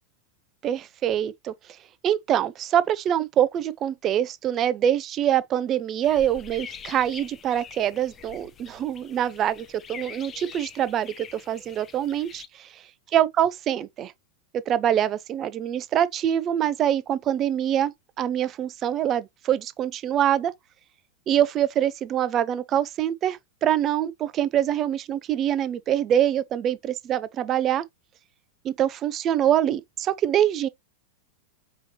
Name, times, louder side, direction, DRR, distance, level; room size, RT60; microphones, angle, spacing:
voice 1, 0.6-1.5 2.0-12.7 13.1-14.1 14.7-20.5 21.3-27.8 28.6-30.7, right 10 dB, 30° right, 0.4 m, -24 dB
sound 1, 6.0-12.5, left 7 dB, 25° left, 0.5 m, -44 dB
4.8 x 2.9 x 3.2 m
figure-of-eight pair, 90°, 0 cm